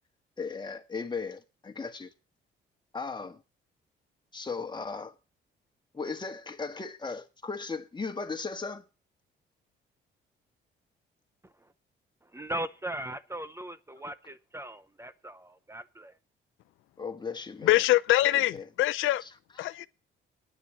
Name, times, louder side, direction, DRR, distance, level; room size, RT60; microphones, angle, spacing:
voice 1, 0.4-2.1 2.9-3.4 4.3-5.1 5.9-8.8 17.0-17.8 18.5-18.7 19.2-19.3, left 4 dB, 20° left, 1.6 m, -36 dB
voice 2, 12.3-16.1, right 1 dB, 15° right, 0.7 m, -38 dB
voice 3, 17.6-19.2 19.6-19.9, left 16 dB, 85° left, 0.5 m, -24 dB
9.7 x 6.8 x 9.0 m
cardioid pair, 90°, 20 cm